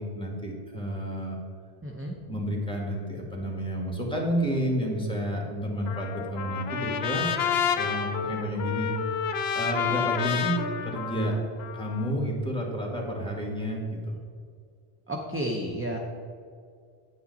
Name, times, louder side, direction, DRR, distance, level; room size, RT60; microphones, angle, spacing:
voice 1, 0.0-1.4 2.3-7.3 7.7-8.9 9.5-11.4 11.7-14.2, equal, 5° left, -1 dB, 1.8 m, -30 dB
voice 2, 1.8-2.2 15.1-16.0, right 1 dB, 15° right, 0 dB, 0.6 m, -31 dB
Trumpet, 5.9-12.1, left 8 dB, 80° left, 0.9 m, -30 dB
9.5 x 8.6 x 4.1 m, 2.3 s
omnidirectional pair, 1.0 m